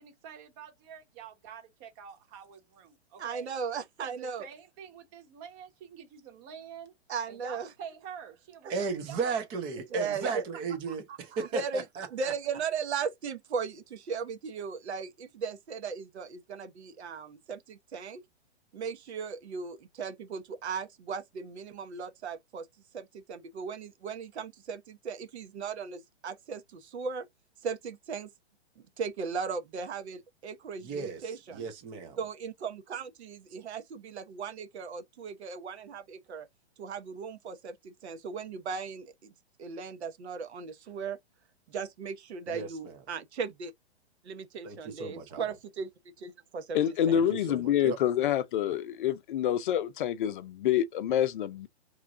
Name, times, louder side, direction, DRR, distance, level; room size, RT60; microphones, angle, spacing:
voice 1, 0.0-3.5 4.0-6.9 7.3-9.2 9.9-10.4 10.7-11.5, right 8 dB, 30° right, 1.1 m, -46 dB
voice 2, 3.2-4.5 7.1-7.7 8.9-9.0 9.9-10.4 11.5-11.8 12.1-18.2 18.7-22.7 22.9-27.3 27.6-28.3 28.8-31.7 32.2-36.5 36.8-39.3 39.6-41.2 41.7-43.7 44.2-45.9 46.2-46.8 47.1-47.3, right 5 dB, 75° right, 1.1 m, -37 dB
voice 3, 8.7-11.0 11.4-12.1 30.8-31.2 31.5-32.2 42.5-42.7 44.6-45.4 47.1-48.0, right 5 dB, 15° right, 0.4 m, -35 dB
voice 4, 46.7-51.7, left 10 dB, 50° left, 0.5 m, -27 dB
3.1 x 2.3 x 3.6 m
hypercardioid pair, 145°, 34 cm